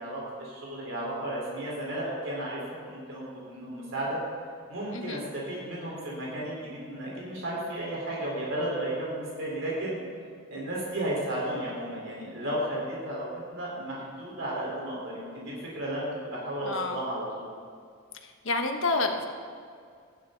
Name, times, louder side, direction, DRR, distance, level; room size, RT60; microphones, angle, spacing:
voice 1, 0.0-4.2 4.7-9.9 10.5-13.2 13.5-17.5, right 1 dB, 65° right, -5 dB, 4.3 m, -33 dB
voice 2, 4.9-5.2 16.6-17.0 18.2-19.3, left 3 dB, 65° left, 4 dB, 1.3 m, -29 dB
17.5 x 13.5 x 4.0 m, 2.2 s
head